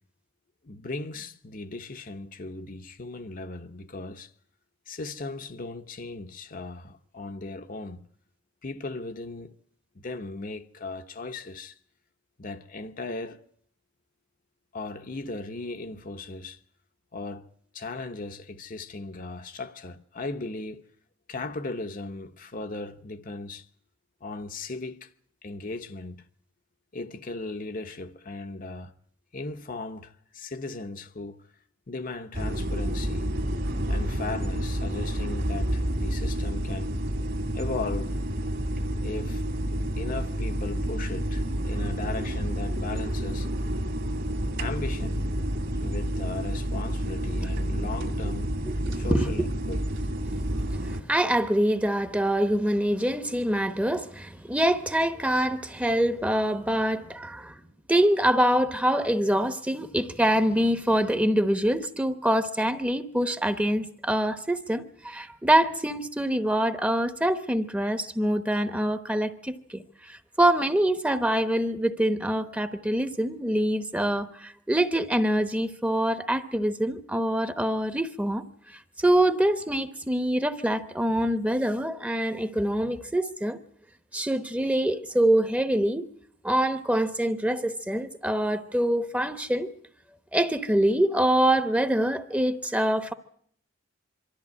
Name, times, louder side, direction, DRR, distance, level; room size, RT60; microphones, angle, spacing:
voice 1, 0.6-4.3 4.9-8.0 8.6-9.6 9.9-11.7 12.4-13.4 14.7-16.6 17.1-17.5 17.7-20.9 21.3-23.7 24.2-25.1 25.4-26.2 26.9-28.9 29.3-31.5 31.9-33.3 33.9-36.9 37.5-38.2 39.0-39.4 40.0-43.5 44.6-45.3 45.8-48.5 48.9-49.8, left 3 dB, 45° left, 0.9 m, -37 dB
sound 1, 32.3-51.0, equal, 55° right, 2.2 m, -29 dB
voice 2, 48.6-49.3 50.7-57.5 57.9-78.4 78.7-83.6 84.1-86.1 86.4-89.7 90.3-93.1, right 1 dB, 5° right, 0.9 m, -25 dB
24.0 x 13.5 x 9.6 m
head